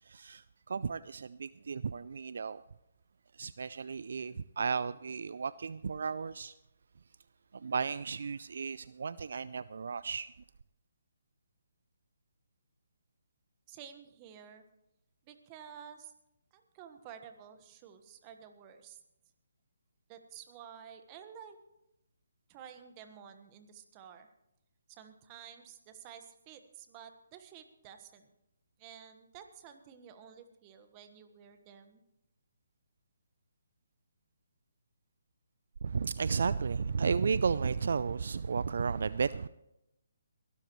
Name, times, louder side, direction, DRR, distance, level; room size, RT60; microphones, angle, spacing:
voice 1, 0.0-2.6 3.3-6.5 7.5-10.3 35.8-39.5, right 5 dB, 65° right, 0.4 m, -33 dB
voice 2, 13.7-14.6 15.2-16.1 16.5-19.0 20.1-21.6 22.5-24.3 24.9-28.3 28.8-32.0, right 8 dB, 25° right, 1.4 m, -52 dB
22.0 x 12.5 x 3.1 m
hypercardioid pair, 150°, 0 cm